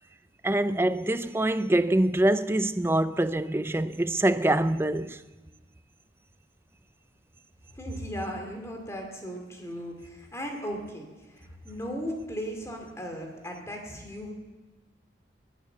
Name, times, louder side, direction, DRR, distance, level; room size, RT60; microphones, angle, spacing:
voice 1, 0.4-5.2, right 1 dB, 15° right, 0.4 m, -25 dB
voice 2, 7.7-14.3, equal, 15° left, 2.5 m, -37 dB
20.0 x 9.2 x 6.7 m
head